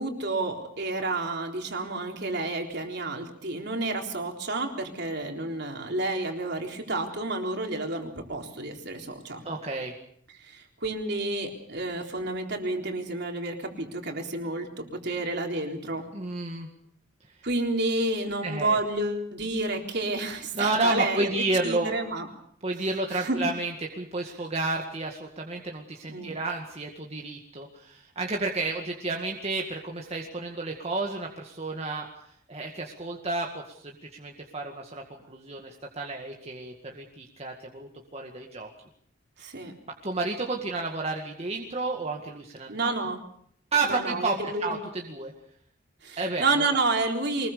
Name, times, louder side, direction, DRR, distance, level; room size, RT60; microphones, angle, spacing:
voice 1, 0.0-9.4 10.4-16.1 17.4-22.3 23.1-23.4 26.1-26.3 39.4-39.7 42.7-43.2 43.9-44.7 46.0-47.5, right 2 dB, 55° right, 3 dB, 3.8 m, -30 dB
voice 2, 9.4-9.9 16.1-16.7 18.4-18.8 20.5-21.9 22.6-32.1 32.5-38.7 40.0-42.9 43.7-45.3 46.2-46.8, right 3 dB, 30° right, 1 dB, 2.0 m, -31 dB
24.0 x 20.5 x 6.8 m, 0.66 s
head